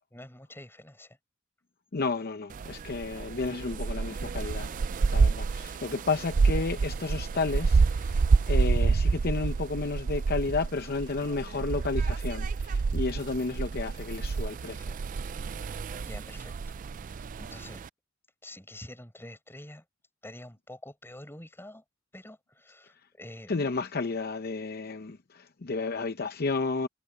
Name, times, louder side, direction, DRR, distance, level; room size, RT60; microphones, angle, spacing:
voice 1, 0.1-1.2 15.9-16.8 17.0-17.8 18.4-19.8 20.2-21.8 22.1-23.6, left 1 dB, 10° left, 7.0 m, -47 dB
voice 2, 1.9-4.8 5.1-15.0 23.5-26.9, left 3 dB, 50° left, 0.7 m, -32 dB
sound 1, 2.5-17.9, right 4 dB, 40° right, 0.3 m, -28 dB
head